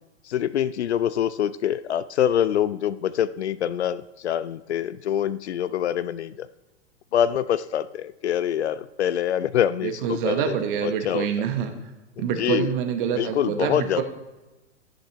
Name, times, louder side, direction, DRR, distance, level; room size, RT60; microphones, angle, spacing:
voice 1, 0.2-6.5 7.1-10.5 10.8-11.3 12.2-12.7 13.2-14.0, left 10 dB, 70° left, 16 dB, 0.5 m, -25 dB
voice 2, 9.8-11.7 12.2-14.0, right 8 dB, 45° right, 6 dB, 1.3 m, -26 dB
14.5 x 6.7 x 3.0 m, 1.1 s
figure-of-eight pair, 105°, 35 cm